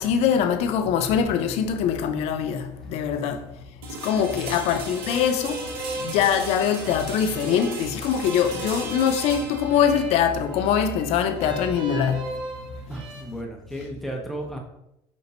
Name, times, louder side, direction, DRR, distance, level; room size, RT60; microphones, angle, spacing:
voice 1, 0.0-3.4 4.0-5.7 6.0-12.2, left 8 dB, 60° left, 0.5 m, -23 dB
sound 1, 3.8-13.7, right 3 dB, 80° right, 0.9 m, -38 dB
sound 2, 5.0-13.2, right 2 dB, 55° right, 1.0 m, -38 dB
voice 2, 12.9-14.6, right 1 dB, ahead, 1.0 m, -34 dB
5.2 x 2.8 x 2.7 m
supercardioid pair, 80°, 12 cm